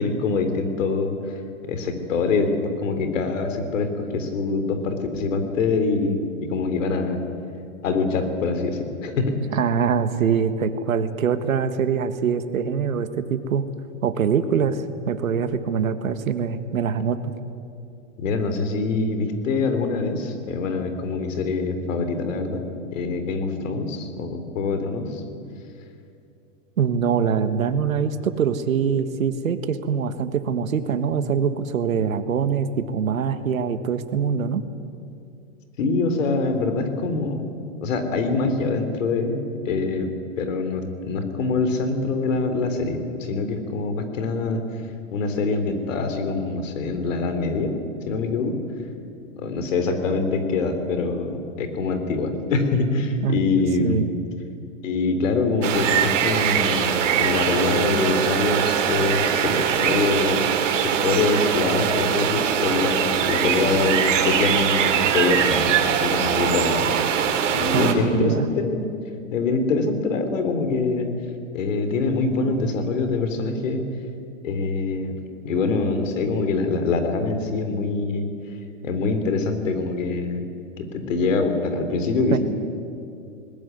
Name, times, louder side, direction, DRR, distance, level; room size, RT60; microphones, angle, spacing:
voice 1, 0.0-1.4 1.7-6.2 6.5-7.2 7.8-9.3 18.2-22.6 22.9-25.2 35.8-37.5 37.8-40.1 40.4-44.6 45.1-47.8 48.1-48.6 49.4-54.0 54.8-60.4 60.8-66.9 67.5-68.9 69.3-71.1 71.5-73.9 74.4-75.2 75.4-78.3 78.8-80.4 80.8-82.4, left 3 dB, 70° left, 8 dB, 3.8 m, -24 dB
voice 2, 9.5-13.7 14.0-17.2 26.8-34.6 53.2-54.1 67.7-68.5 82.3-82.4, right 7 dB, 85° right, 11 dB, 1.6 m, -23 dB
sound 1, 55.6-67.9, right 8 dB, 65° right, 3.2 m, -22 dB
20.5 x 20.0 x 9.6 m, 2.5 s
hypercardioid pair, 130°, 40 cm